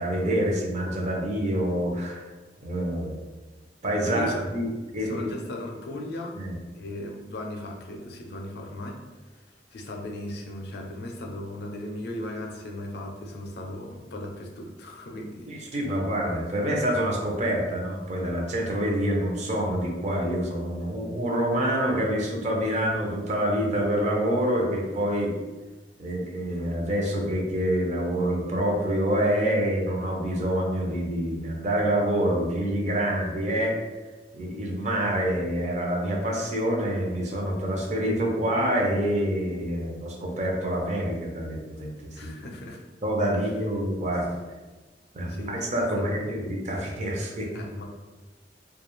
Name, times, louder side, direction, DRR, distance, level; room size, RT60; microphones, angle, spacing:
voice 1, 0.0-2.3 2.6-3.2 3.8-4.7 4.9-5.3 6.4-6.5 15.5-25.3 26.0-33.8 34.3-42.3 43.0-44.3 45.1-47.5, right 1 dB, 40° right, -1 dB, 0.5 m, -26 dB
voice 2, 4.0-4.5 5.0-6.4 6.7-9.0 9.7-15.8 42.2-42.8 43.4-43.5 45.3-45.6 46.0-46.3 47.5-47.8, left 1 dB, 65° left, 1 dB, 0.4 m, -37 dB
2.3 x 2.2 x 3.0 m, 1.2 s
head